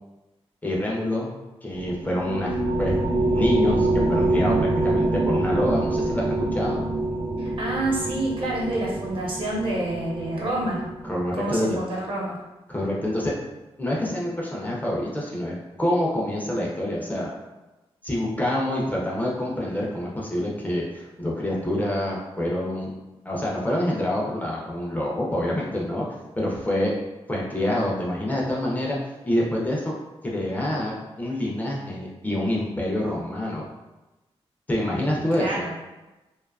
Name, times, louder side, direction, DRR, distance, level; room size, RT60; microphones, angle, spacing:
voice 1, 0.6-1.3 1.6-3.0 3.3-6.8 11.0-11.8 12.7-13.4 13.8-17.3 18.0-22.9 23.3-26.9 27.3-29.0 29.2-29.9 30.2-33.7 34.7-35.7, left 1 dB, 15° left, -4 dB, 0.4 m, -26 dB
sound 1, 1.7-11.5, right 2 dB, 85° right, 0.5 m, -25 dB
voice 2, 7.4-10.8 11.3-12.4 35.4-35.7, right 1 dB, 55° right, -4 dB, 0.8 m, -28 dB
2.5 x 2.2 x 2.3 m, 1.1 s
wide cardioid pair, 125°, 11 cm